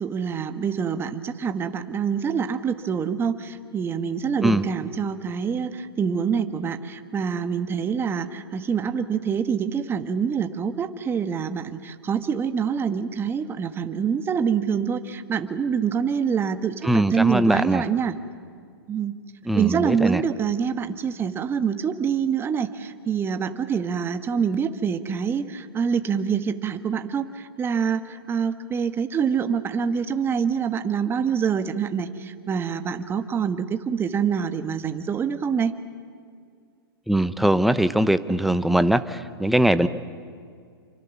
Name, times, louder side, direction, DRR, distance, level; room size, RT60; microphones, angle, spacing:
voice 1, 0.0-18.2 18.9-19.2 19.5-35.7, right 7 dB, 15° right, 9 dB, 1.3 m, -26 dB
voice 2, 16.8-17.9 19.4-20.2 37.1-39.9, right 1 dB, ahead, 11 dB, 0.8 m, -21 dB
28.0 x 24.5 x 7.2 m, 2.2 s
hypercardioid pair, 130°, 13 cm